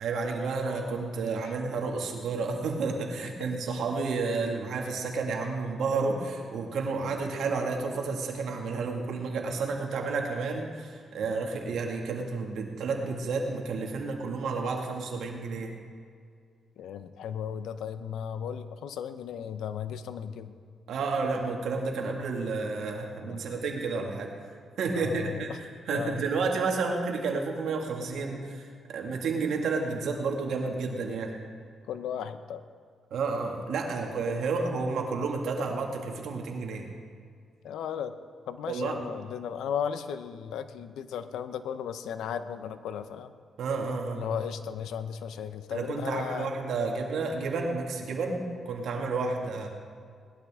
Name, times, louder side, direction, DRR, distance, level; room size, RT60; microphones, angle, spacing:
voice 1, 0.0-15.8 20.9-24.3 24.8-31.3 33.1-36.9 38.7-39.0 43.6-44.2 45.7-49.7, right 4 dB, 80° right, 1 dB, 2.1 m, -31 dB
voice 2, 16.8-20.6 23.3-23.5 25.0-25.6 25.9-26.2 31.9-32.6 37.6-38.2 38.5-43.3 44.1-46.5, left 8 dB, 85° left, 11 dB, 0.7 m, -35 dB
19.0 x 12.0 x 3.7 m, 2.1 s
cardioid pair, 65°, 0 cm